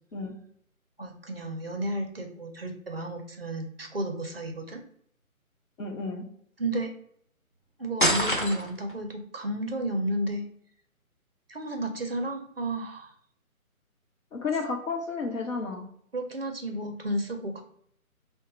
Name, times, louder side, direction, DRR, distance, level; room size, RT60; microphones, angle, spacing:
voice 1, 1.0-4.8 6.6-6.9 7.8-10.4 11.5-13.1 16.1-17.6, right 1 dB, 45° right, 3 dB, 0.5 m, -32 dB
voice 2, 5.8-6.2 14.3-15.9, left 4 dB, 65° left, 2 dB, 1.0 m, -32 dB
sound 1, 8.0-8.9, equal, 40° left, 0.4 m, -25 dB
3.8 x 2.1 x 4.0 m, 0.65 s
figure-of-eight pair, 160°, 43 cm